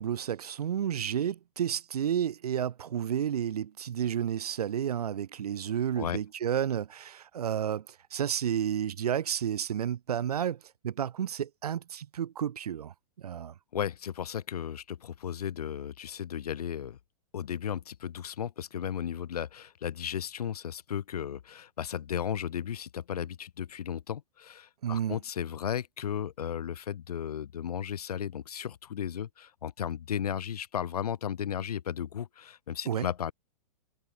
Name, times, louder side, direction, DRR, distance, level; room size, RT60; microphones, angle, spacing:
voice 1, 0.0-13.5 24.8-25.2 32.9-33.1, right 9 dB, 85° right, 1.7 m, -31 dB
voice 2, 13.7-17.0 17.3-33.3, left 9 dB, 80° left, 4.4 m, -35 dB
hypercardioid pair, 140°, 19 cm